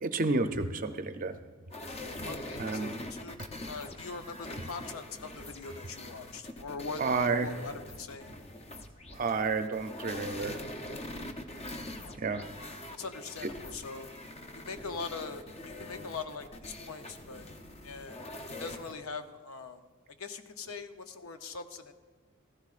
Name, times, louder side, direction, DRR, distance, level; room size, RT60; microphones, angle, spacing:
voice 1, 0.0-1.4 2.6-2.9 7.0-7.5 9.1-10.6 12.2-12.5, right 3 dB, 40° right, 9 dB, 0.5 m, -30 dB
sound 1, 1.7-18.9, left 1 dB, 30° left, 0.7 m, -43 dB
voice 2, 2.3-3.4 3.6-7.0 7.4-8.3 12.0-12.4 12.9-14.1 14.5-17.5 17.8-18.3 18.6-19.8 20.2-21.9, left 4 dB, 75° left, 8 dB, 0.7 m, -42 dB
14.5 x 14.0 x 2.5 m, 1.4 s
head